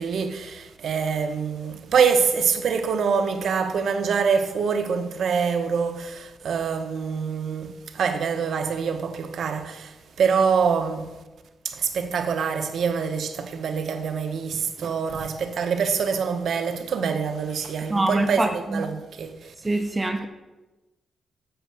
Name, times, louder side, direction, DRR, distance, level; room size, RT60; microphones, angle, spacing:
voice 1, 0.0-11.1 11.6-19.5, right 6 dB, 60° right, 0.9 m, -25 dB
voice 2, 17.9-18.8 19.6-20.3, right 2 dB, 15° right, 0.7 m, -24 dB
8.0 x 7.2 x 6.4 m
wide cardioid pair, 145°, 0 cm